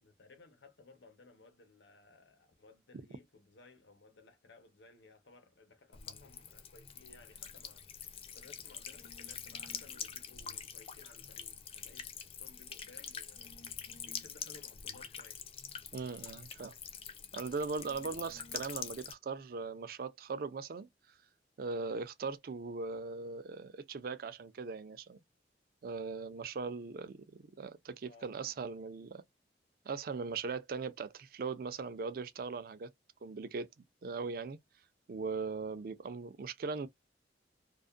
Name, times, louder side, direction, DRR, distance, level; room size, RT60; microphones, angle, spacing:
voice 1, 0.0-7.8 8.3-13.5 14.0-15.4 28.0-28.3, left 3 dB, 85° left, 0.9 m, -60 dB
Buzz / Water tap faucet / Trickle dribble, 5.9-19.1, left 7 dB, 30° left, 0.4 m, -45 dB
voice 2, 15.9-16.7 17.3-20.9 21.6-25.2 25.8-29.2 29.9-32.9 33.2-33.7 34.0-34.6 35.1-36.9, right 4 dB, 55° right, 0.4 m, -39 dB
2.4 x 2.3 x 2.4 m
head